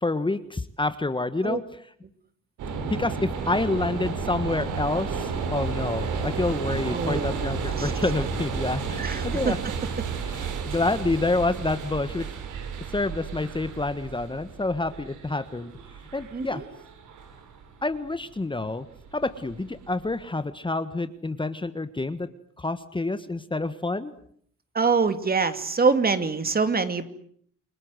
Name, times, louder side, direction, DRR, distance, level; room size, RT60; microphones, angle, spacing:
voice 1, 0.0-1.6 2.9-9.6 10.3-12.3 12.9-15.7 16.1-16.6 17.8-18.8 19.1-22.3 22.6-24.1, left 2 dB, 15° left, 11 dB, 1.5 m, -28 dB
sound 1, 2.6-20.2, right 5 dB, 80° right, 4.9 m, -32 dB
voice 2, 6.9-7.4 7.8-7.9 9.0-9.6 16.3-16.6 24.7-27.0, right 4 dB, 30° right, 10 dB, 2.5 m, -24 dB
29.0 x 21.5 x 8.0 m, 0.65 s
cardioid pair, 90°, 30 cm